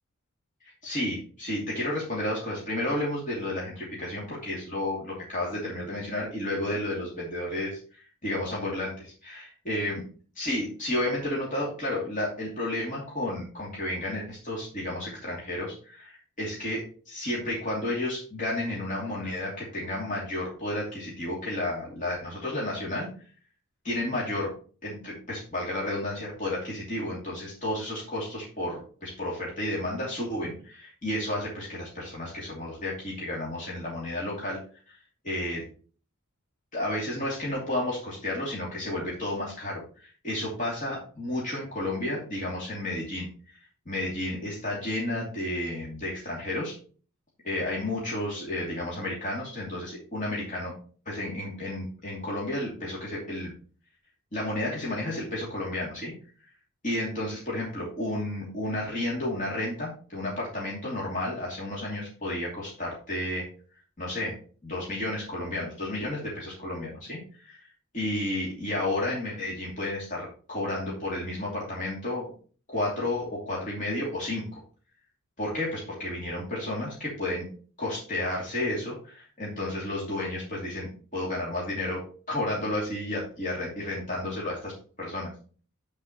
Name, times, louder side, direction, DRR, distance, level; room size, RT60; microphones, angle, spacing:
voice 1, 0.6-10.0 10.3-23.1 23.8-24.5 24.8-34.6 34.9-35.0 35.2-35.6 36.7-43.6 43.8-46.7 47.4-50.7 51.0-53.5 54.3-56.1 56.8-63.5 64.0-64.4 64.6-67.6 67.9-72.3 72.7-74.6 75.4-77.5 77.8-82.0 82.3-84.7 85.0-85.3, left 1 dB, 40° left, -5 dB, 2.9 m, -32 dB
12.0 x 5.3 x 3.1 m, 0.40 s
head